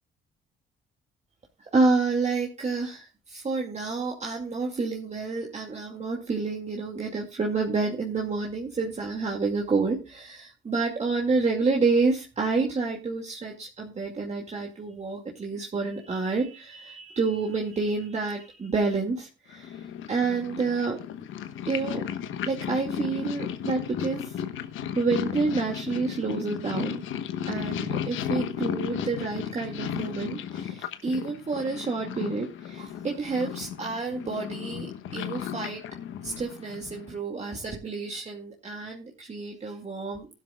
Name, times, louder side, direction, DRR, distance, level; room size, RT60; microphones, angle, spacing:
voice 1, 1.6-21.0 21.7-22.0 22.5-24.3 24.9-27.0 27.5-35.9 36.2-40.3, right 4 dB, 35° right, 0 dB, 2.3 m, -29 dB
Purr, 19.5-37.2, left 9 dB, 80° left, 1.2 m, -34 dB
15.5 x 12.0 x 2.4 m, 0.30 s
cardioid pair, 90°, 20 cm